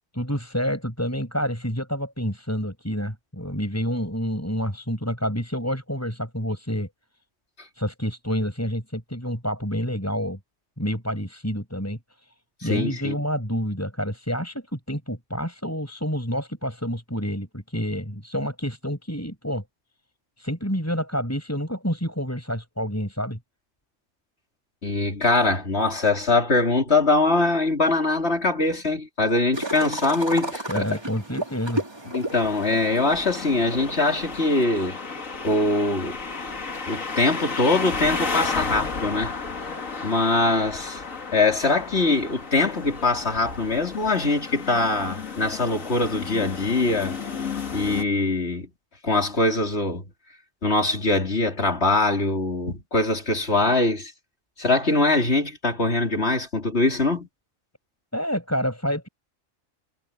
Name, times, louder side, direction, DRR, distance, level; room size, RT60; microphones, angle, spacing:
voice 1, 0.2-6.9 7.8-10.4 10.8-12.0 12.6-19.6 20.4-23.4 30.7-31.8 58.1-59.1, equal, 10° left, 6.2 m, -28 dB
voice 2, 12.7-13.2 24.8-30.9 32.1-35.0 35.4-36.2 36.9-39.3 40.0-41.0 41.3-47.2 47.7-48.7 49.0-50.1 50.6-54.1 54.6-57.3, left 2 dB, 55° left, 4.0 m, -22 dB
sound 1, 29.5-34.6, right 1 dB, 20° right, 2.5 m, -33 dB
sound 2, 32.3-48.0, left 4 dB, 85° left, 2.5 m, -33 dB
omnidirectional pair, 1.3 m